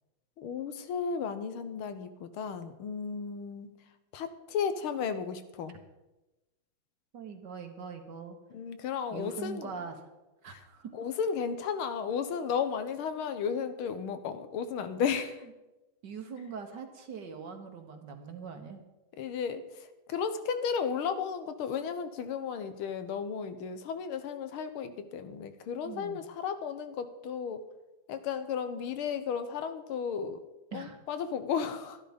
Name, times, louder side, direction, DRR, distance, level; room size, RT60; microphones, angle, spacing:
voice 1, 0.4-3.7 4.1-5.8 8.5-9.7 10.5-10.6 10.9-15.4 19.2-27.6 28.1-30.4 30.7-32.0, left 6 dB, 85° left, 10 dB, 1.8 m, -34 dB
voice 2, 7.1-8.4 9.1-10.0 10.4-10.9 16.0-18.8 25.8-26.2 30.7-31.0, right 5 dB, 60° right, 5 dB, 1.7 m, -42 dB
12.5 x 11.5 x 5.2 m, 1.0 s
omnidirectional pair, 2.3 m